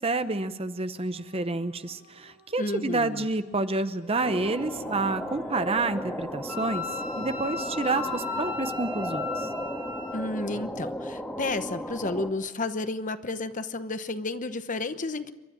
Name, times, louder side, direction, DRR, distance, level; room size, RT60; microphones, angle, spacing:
voice 1, 0.0-9.5, right 3 dB, 25° right, 11 dB, 0.8 m, -29 dB
sound 1, 1.1-8.6, left 4 dB, 60° left, 2.6 m, -51 dB
voice 2, 2.6-3.3 10.1-15.3, left 2 dB, 35° left, 10 dB, 1.0 m, -32 dB
sound 2, 4.2-12.3, equal, 5° left, 1.8 m, -35 dB
Wind instrument woodwind instrument, 6.5-10.2, left 5 dB, 70° right, 3.4 m, -36 dB
28.5 x 13.0 x 8.9 m, 1.1 s
head